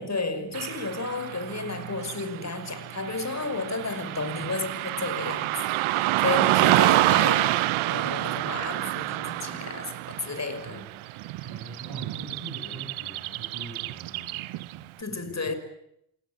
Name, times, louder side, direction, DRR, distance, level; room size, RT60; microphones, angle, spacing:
voice 1, 0.0-10.9 15.0-15.5, left 3 dB, 35° left, 5.6 m, -32 dB
Car passing by / Traffic noise roadway noise, 0.5-14.8, right 17 dB, 75° right, 1.0 m, -28 dB
voice 2, 11.4-15.6, right 3 dB, 50° right, 7.6 m, -43 dB
29.5 x 18.0 x 9.8 m
hypercardioid pair, 40°, 49 cm